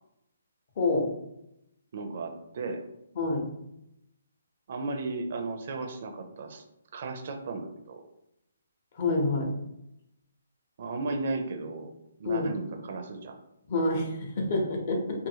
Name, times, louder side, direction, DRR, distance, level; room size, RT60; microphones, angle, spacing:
voice 1, 0.8-1.1 3.2-3.4 8.9-9.5 12.2-12.5 13.7-15.3, left 2 dB, 45° left, 1 dB, 0.7 m, -27 dB
voice 2, 1.9-2.8 4.7-6.6 6.9-8.0 10.8-11.9 12.2-13.4, right 3 dB, 50° right, 5 dB, 0.4 m, -35 dB
2.6 x 2.4 x 2.8 m, 0.83 s
hypercardioid pair, 150°, 0 cm